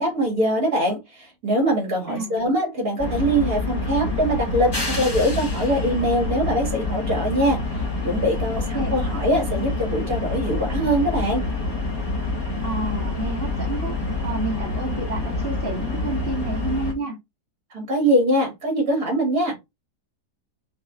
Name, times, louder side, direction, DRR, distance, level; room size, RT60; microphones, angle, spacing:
voice 1, 0.0-11.4 17.7-19.6, equal, 60° right, 2.8 m, -23 dB
voice 2, 2.1-2.4 8.6-8.9 12.6-14.0 14.2-17.2, right 2 dB, 35° right, 1.8 m, -29 dB
sound 1, 3.0-16.9, left 3 dB, 15° left, 1.0 m, -27 dB
5.5 x 3.0 x 2.4 m
omnidirectional pair, 1.8 m